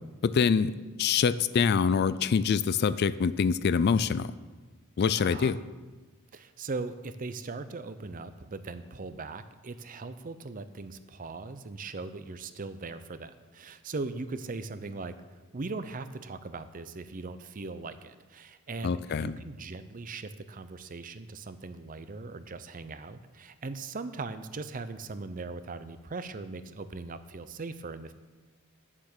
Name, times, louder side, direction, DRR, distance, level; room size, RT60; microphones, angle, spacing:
voice 1, 0.2-0.7 1.0-4.3 5.0-5.6 18.8-19.3, left 6 dB, 50° left, 16 dB, 0.3 m, -25 dB
voice 2, 5.2-5.6 6.3-15.1 15.5-28.1, right 3 dB, 40° right, 12 dB, 0.6 m, -39 dB
9.5 x 7.3 x 6.6 m, 1.3 s
head